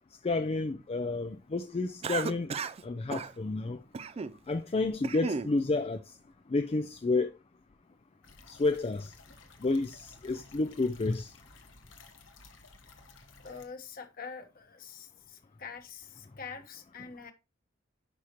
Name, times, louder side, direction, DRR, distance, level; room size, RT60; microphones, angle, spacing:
voice 1, 0.2-2.5 2.8-3.8 4.5-6.0 6.5-7.3 8.5-9.1 9.6-11.3, left 3 dB, 30° left, 0.4 m, -30 dB
Cough, 2.0-2.8 3.1-3.3 3.9-4.4 4.8-5.5, right 5 dB, 30° right, 0.3 m, -34 dB
sound 1, 8.2-13.7, left 3 dB, 80° left, 1.5 m, -55 dB
voice 2, 13.4-17.3, left 5 dB, 50° left, 1.3 m, -45 dB
9.7 x 5.7 x 3.0 m
head